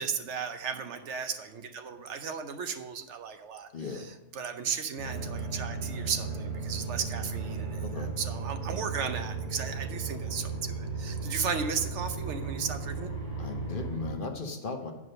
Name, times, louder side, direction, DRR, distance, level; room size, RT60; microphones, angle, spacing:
voice 1, 0.0-13.1, right 6 dB, 75° right, 8 dB, 1.1 m, -35 dB
voice 2, 3.7-4.1 7.8-8.1 13.4-14.9, left 4 dB, 50° left, 5 dB, 0.9 m, -37 dB
sound 1, 5.0-14.1, right 4 dB, 30° right, 2.4 m, -35 dB
9.5 x 5.0 x 6.4 m, 1.0 s
omnidirectional pair, 1.2 m